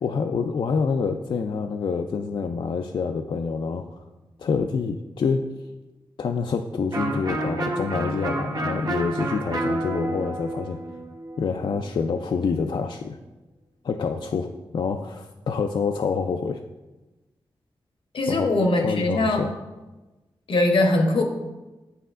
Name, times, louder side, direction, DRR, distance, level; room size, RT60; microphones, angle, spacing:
voice 1, 0.0-4.0 4.4-5.5 6.2-10.8 11.4-13.2 13.8-16.6 18.3-18.5 18.8-19.5, left 5 dB, 60° left, 5 dB, 0.3 m, -27 dB
Electric guitar, 6.9-12.5, right 2 dB, 45° right, 1.0 m, -30 dB
voice 2, 18.1-19.4 20.5-21.2, left 2 dB, 80° left, 3 dB, 0.9 m, -21 dB
7.4 x 5.6 x 2.5 m, 1.1 s
cardioid pair, 55°, 9 cm